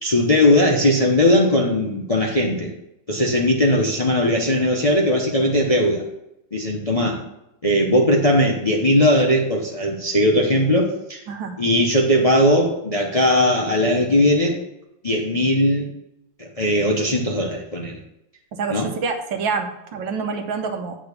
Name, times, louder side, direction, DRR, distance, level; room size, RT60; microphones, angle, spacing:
voice 1, 0.0-2.7 3.1-6.0 6.5-7.2 7.6-11.2 11.6-14.6 15.0-15.9 16.6-18.0 18.7-18.9, left 1 dB, 35° left, 0 dB, 0.6 m, -19 dB
voice 2, 11.3-11.6 18.5-21.0, right 5 dB, 80° right, 5 dB, 1.6 m, -27 dB
8.7 x 3.9 x 6.6 m, 0.85 s
omnidirectional pair, 2.0 m